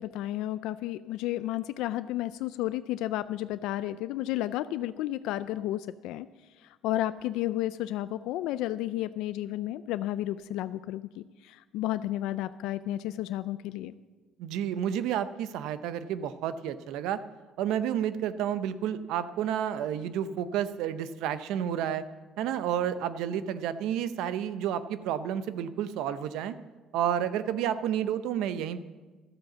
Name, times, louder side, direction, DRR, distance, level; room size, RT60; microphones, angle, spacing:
voice 1, 0.0-6.3 6.8-13.9, left 14 dB, 85° left, 13 dB, 0.3 m, -32 dB
voice 2, 14.4-17.2 17.6-22.1 22.4-26.5 26.9-28.8, right 9 dB, 80° right, 13 dB, 0.7 m, -30 dB
13.0 x 7.7 x 7.1 m, 1.3 s
cardioid pair, 145°, 0 cm